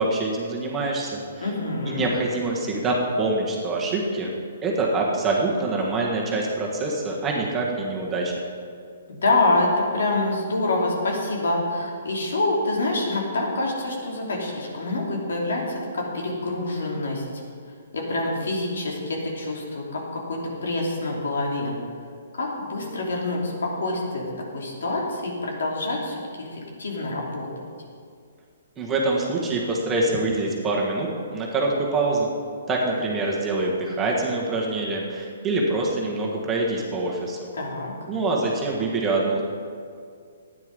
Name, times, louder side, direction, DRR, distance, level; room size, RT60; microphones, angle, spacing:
voice 1, 0.0-1.5 1.9-4.3 4.6-8.4 28.8-32.3 32.7-37.5 38.1-39.4, right 2 dB, 15° right, -3 dB, 1.5 m, -25 dB
voice 2, 1.4-2.1 9.1-17.2 17.9-21.7 22.3-24.2 24.5-27.5 37.5-37.9, left 2 dB, 80° left, -2 dB, 3.0 m, -26 dB
12.0 x 9.7 x 5.4 m, 2.2 s
hypercardioid pair, 160°, 0 cm